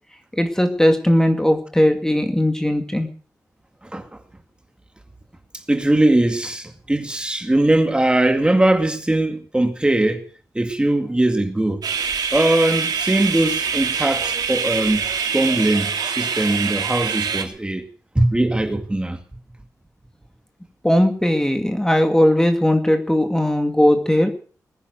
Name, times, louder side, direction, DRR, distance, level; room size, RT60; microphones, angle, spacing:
voice 1, 0.4-3.1 20.8-24.3, left 1 dB, 10° left, 2.1 m, -18 dB
voice 2, 5.7-10.3 10.5-11.8 12.3-15.0 15.3-17.9 18.2-19.2, right 1 dB, 15° right, 2.1 m, -20 dB
sound 1, 11.8-17.4, right 6 dB, 80° right, 2.5 m, -24 dB
19.5 x 10.0 x 6.6 m
wide cardioid pair, 90°, 7 cm